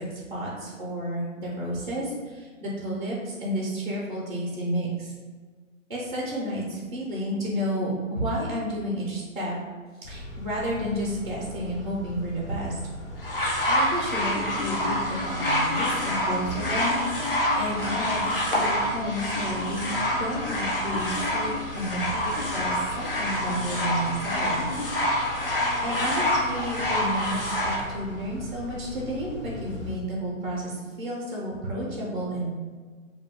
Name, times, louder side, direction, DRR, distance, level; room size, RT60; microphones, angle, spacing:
voice 1, 0.0-5.1 5.9-9.6 10.0-12.8 13.6-19.9 20.2-24.7 25.8-32.5, equal, 40° right, -5 dB, 0.4 m, -31 dB
Car / Idling / Accelerating revving vroom, 10.0-29.9, equal, 60° left, 0.9 m, -40 dB
sound 1, 13.2-27.8 28.7-28.8, left 1 dB, 45° left, 0.4 m, -27 dB
2.2 x 2.2 x 3.3 m, 1.5 s
hypercardioid pair, 160°, 41 cm